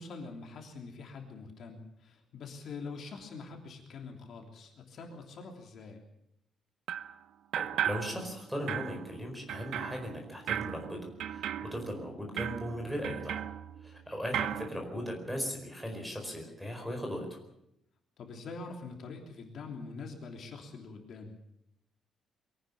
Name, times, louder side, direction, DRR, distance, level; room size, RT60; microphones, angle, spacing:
voice 1, 0.0-6.0 18.2-21.4, left 4 dB, 50° left, 2 dB, 3.2 m, -44 dB
sound 1, 6.9-7.2 7.5-8.4 8.7-14.0 14.3-14.7, right 10 dB, 75° right, 0.9 m, -36 dB
voice 2, 7.6-13.4 13.8-17.4, equal, ahead, 3 dB, 4.7 m, -38 dB
23.0 x 18.0 x 7.0 m, 0.79 s
cardioid pair, 180°, 0 cm